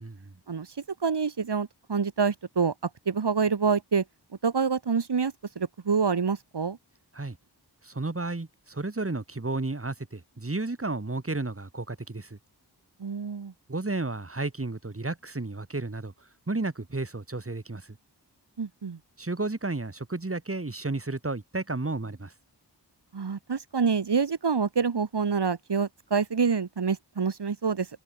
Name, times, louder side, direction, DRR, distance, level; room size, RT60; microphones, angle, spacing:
voice 1, 1.0-2.7 3.1-4.0 4.4-6.8 13.0-13.5 18.6-19.0 23.1-27.9, right 5 dB, 80° right, 1.8 m, -27 dB
voice 2, 7.8-12.4 13.7-16.1 16.5-18.0 19.2-22.3, right 2 dB, 35° right, 2.7 m, -32 dB
wide cardioid pair, 50°, 40 cm